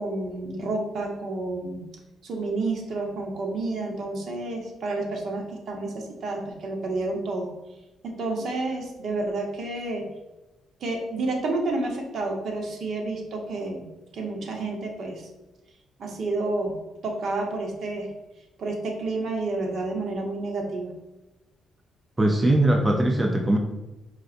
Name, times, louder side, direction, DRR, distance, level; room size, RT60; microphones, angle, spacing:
voice 1, 0.0-1.8 2.2-7.5 8.0-10.1 10.8-13.9 14.1-15.3 16.0-16.7 17.0-18.1 18.6-20.9, right 2 dB, 60° right, 1 dB, 1.0 m, -30 dB
voice 2, 22.2-23.6, right 1 dB, 20° right, 3 dB, 0.5 m, -20 dB
4.7 x 3.8 x 2.5 m, 1.0 s
cardioid pair, 90°, 0 cm